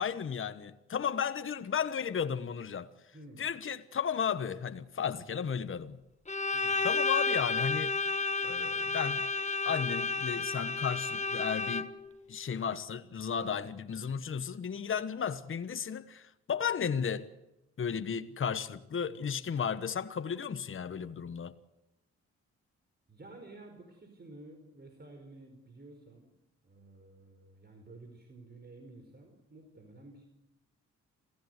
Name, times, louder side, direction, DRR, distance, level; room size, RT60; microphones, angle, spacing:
voice 1, 0.0-2.9 3.4-6.0 6.8-8.0 8.4-9.3 9.6-11.9 12.3-17.3 17.8-21.5, left 7 dB, 45° left, 1.2 m, -34 dB
voice 2, 3.1-3.5 6.5-6.9 11.1-11.2 19.0-19.4 23.1-26.3 26.6-30.2, right 2 dB, 35° right, 5.0 m, -52 dB
Bowed string instrument, 6.3-12.1, left 4 dB, 25° left, 1.5 m, -31 dB
27.0 x 16.0 x 8.1 m
cardioid pair, 70°, 29 cm